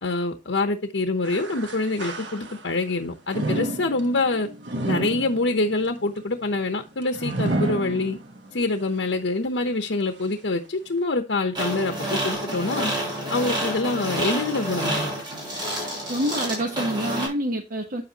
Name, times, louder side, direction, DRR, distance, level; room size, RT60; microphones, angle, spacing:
voice 1, 0.0-4.5 4.9-8.2 8.5-12.9 13.3-15.1, left 2 dB, 75° left, 0.9 m, -25 dB
sound 1, 1.2-2.8 3.3-8.6 9.0-9.1 10.0-10.1, right 2 dB, 75° right, 1.3 m, -31 dB
sound 2, 11.5-17.3, right 1 dB, 25° right, 5.6 m, -29 dB
voice 2, 16.1-18.0, equal, 50° right, 1.1 m, -27 dB
9.0 x 7.8 x 2.9 m
head